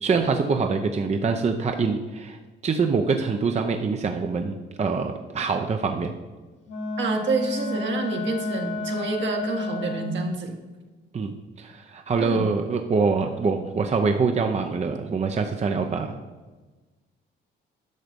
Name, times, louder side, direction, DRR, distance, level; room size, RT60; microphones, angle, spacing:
voice 1, 0.0-2.4 2.6-6.1 11.1-16.2, right 4 dB, 35° right, 5 dB, 0.7 m, -25 dB
Wind instrument woodwind instrument, 6.7-10.3, left 2 dB, 75° left, 1.8 m, -31 dB
voice 2, 7.0-10.6 12.2-12.4, right 3 dB, 65° right, 2 dB, 1.7 m, -28 dB
10.5 x 6.5 x 5.3 m, 1.3 s
cardioid pair, 90°, 20 cm